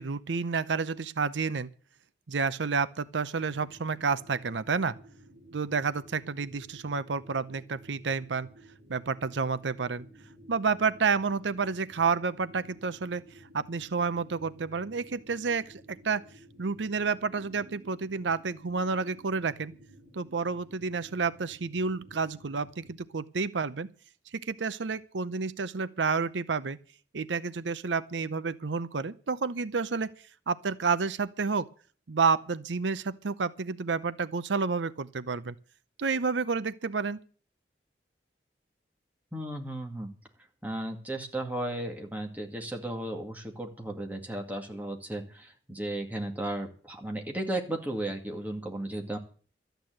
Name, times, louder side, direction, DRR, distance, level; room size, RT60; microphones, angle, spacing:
voice 1, 0.0-1.7 2.3-5.0 5.5-8.5 8.9-10.1 10.5-13.2 13.5-16.2 16.6-19.7 20.1-23.9 24.3-26.8 27.1-30.1 30.5-31.7 32.1-35.6 36.0-37.2, right 5 dB, 90° right, 0.7 m, -30 dB
sound 1, 3.4-23.0, right 1 dB, 50° right, 4.5 m, -54 dB
voice 2, 39.3-40.1 40.6-49.2, right 1 dB, 10° right, 2.1 m, -35 dB
13.0 x 9.1 x 7.7 m
head